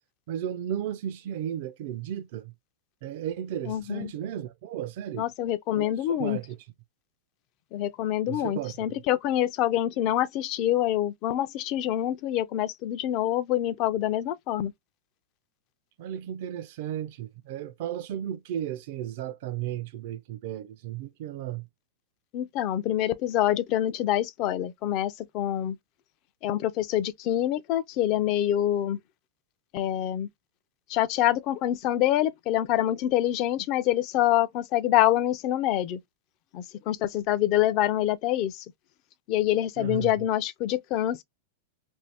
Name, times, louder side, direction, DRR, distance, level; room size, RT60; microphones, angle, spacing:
voice 1, 0.3-2.5 3.0-5.3 5.8-6.6 8.3-8.7 16.0-21.7 39.8-40.1, right 10 dB, 60° right, 0.4 m, -34 dB
voice 2, 3.6-4.1 5.1-6.4 7.7-14.7 22.3-25.8 26.4-29.0 29.7-30.3 30.9-36.0 36.5-38.7 39.3-41.2, left 13 dB, 45° left, 0.4 m, -26 dB
2.6 x 2.6 x 3.2 m
hypercardioid pair, 135°, 0 cm